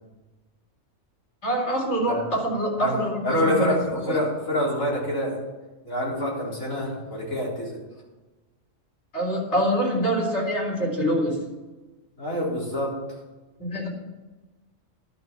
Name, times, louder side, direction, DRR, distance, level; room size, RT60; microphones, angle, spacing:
voice 1, 1.4-4.2 9.1-11.4 13.6-13.9, right 1 dB, 55° left, -3 dB, 4.1 m, -25 dB
voice 2, 3.2-5.4 5.9-7.8 12.2-13.0, left 1 dB, 80° left, -5 dB, 4.6 m, -26 dB
11.5 x 6.3 x 9.2 m, 1.2 s
omnidirectional pair, 1.4 m